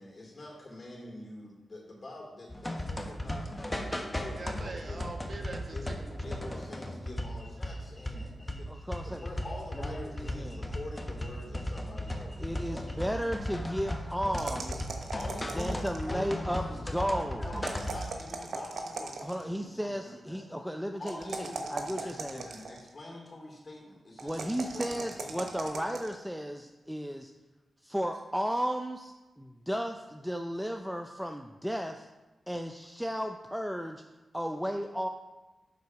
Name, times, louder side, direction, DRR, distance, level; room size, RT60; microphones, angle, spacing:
voice 1, 0.0-5.0 5.7-5.8 6.2-8.9 9.2-13.3 15.1-20.4 20.9-25.5, left 2 dB, 50° left, -1 dB, 3.1 m, -45 dB
sound 1, 2.5-18.1, left 1 dB, 20° left, 1.2 m, -36 dB
voice 2, 4.3-6.6, right 2 dB, 50° right, 2 dB, 1.5 m, -43 dB
voice 3, 8.7-9.3 9.7-10.6 12.4-14.9 15.5-17.5 19.2-22.4 24.2-27.3 27.8-32.1 32.5-34.0 34.3-35.1, equal, ahead, 4 dB, 0.6 m, -34 dB
sound 2, 14.4-16.2 17.6-19.5 21.0-22.9 24.2-26.1, right 3 dB, 75° right, 1.0 m, -39 dB
11.5 x 4.0 x 4.7 m, 1.1 s
cardioid pair, 45°, 0 cm